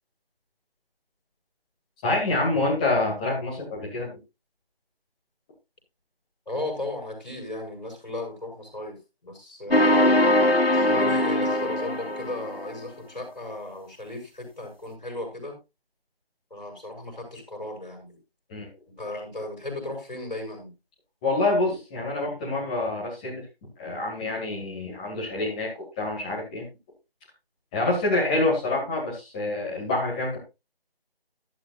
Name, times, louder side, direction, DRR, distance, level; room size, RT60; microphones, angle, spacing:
voice 1, 2.0-4.2 18.5-18.7 21.2-23.4 23.8-25.7 26.0-26.6 27.7-30.4, left 2 dB, 10° left, -4 dB, 2.5 m, -26 dB
voice 2, 6.5-9.0 9.2-10.4 10.7-15.6 16.5-18.2 19.0-20.7, left 2 dB, 45° left, 2 dB, 7.1 m, -35 dB
sound 1, 9.7-12.7, left 1 dB, 80° left, 2.5 m, -21 dB
14.0 x 12.0 x 2.5 m, 0.26 s
figure-of-eight pair, 165°, 30 cm